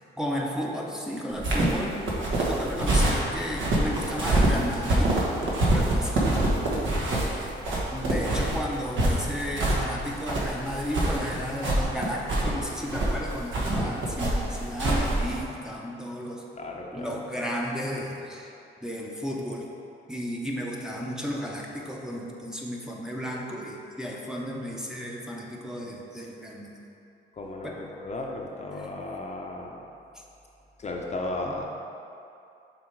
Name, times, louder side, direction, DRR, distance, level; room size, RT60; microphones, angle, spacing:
voice 1, 0.0-5.2 5.7-6.5 7.2-7.6 7.9-16.4 16.9-18.5 18.8-19.7 20.1-26.8 27.6-27.8, equal, 5° right, -3 dB, 0.7 m, -33 dB
sound 1, 1.3-15.4, right 1 dB, 75° right, 1.2 m, -25 dB
voice 2, 16.5-17.1 27.3-29.9 30.8-31.6, left 2 dB, 35° left, 0 dB, 0.7 m, -35 dB
6.3 x 3.5 x 4.6 m, 2.7 s
cardioid pair, 90°, 20 cm